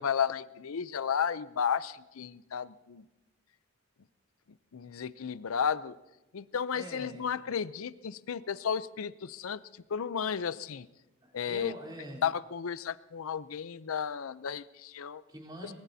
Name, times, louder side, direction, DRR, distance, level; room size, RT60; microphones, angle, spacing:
voice 1, 0.0-3.0 4.7-6.0 6.3-9.6 9.9-10.9 11.3-11.7 12.2-15.2 15.6-15.7, left 7 dB, 90° left, 16 dB, 0.5 m, -33 dB
voice 2, 6.7-7.3 11.2-12.2 15.3-15.7, right 1 dB, 20° right, -4 dB, 3.7 m, -44 dB
23.5 x 20.0 x 2.7 m, 1.0 s
head